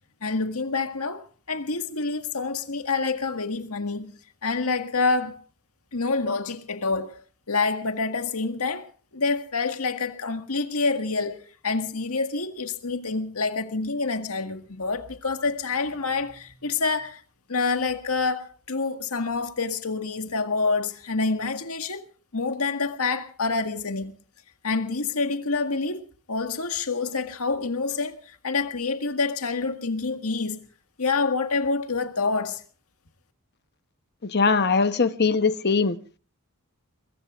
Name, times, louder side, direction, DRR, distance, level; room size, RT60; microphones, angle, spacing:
voice 1, 0.2-1.2 1.5-4.1 4.4-5.4 5.9-8.9 9.1-17.2 17.5-22.1 22.3-24.1 24.6-30.6 31.0-32.6, left 4 dB, 85° left, 1.8 m, -27 dB
voice 2, 34.3-36.0, left 4 dB, 50° left, 1.0 m, -21 dB
23.0 x 22.5 x 2.5 m
head